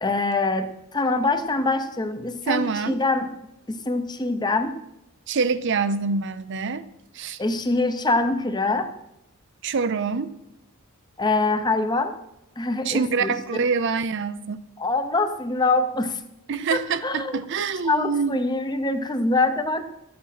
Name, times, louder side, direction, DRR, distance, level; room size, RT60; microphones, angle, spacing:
voice 1, 0.0-3.3 3.7-4.8 7.4-8.9 11.2-12.2 12.6-13.6 14.8-16.2 16.5-17.4 17.8-19.8, left 3 dB, 20° left, 9 dB, 0.7 m, -24 dB
voice 2, 2.5-3.0 5.3-6.8 7.1-7.4 9.6-10.3 12.8-14.6 16.5-18.4, right 5 dB, 55° right, 13 dB, 0.5 m, -25 dB
12.5 x 8.6 x 5.8 m, 0.87 s
head